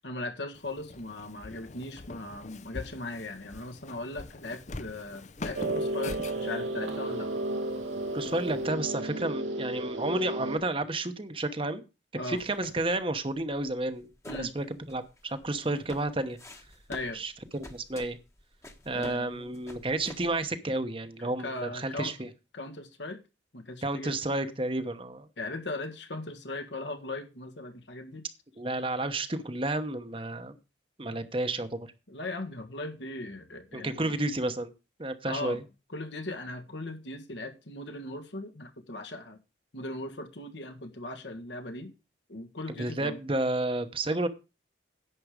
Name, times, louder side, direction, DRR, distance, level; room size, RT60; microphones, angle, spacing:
voice 1, 0.0-7.3 12.2-12.4 14.3-14.5 16.9-17.2 18.9-19.5 21.2-22.1 22.5-23.2 23.5-24.2 25.4-28.2 31.1-31.2 32.1-34.1 35.3-35.6 35.9-39.4 39.7-41.9 42.3-43.2, left 2 dB, 75° left, 1.7 m, -38 dB
Walk footsteps, 0.5-8.7, left 3 dB, 40° left, 0.6 m, -44 dB
sound 1, 5.6-10.6, right 1 dB, 90° right, 1.8 m, -33 dB
voice 2, 8.1-11.8 12.1-16.4 17.1-18.2 18.9-22.3 23.8-25.3 28.6-30.6 31.0-31.9 33.7-34.7 35.0-35.6 42.8-44.3, right 2 dB, 30° right, 1.0 m, -31 dB
sound 2, 12.3-20.5, left 1 dB, 15° left, 1.2 m, -49 dB
11.0 x 7.8 x 5.1 m
head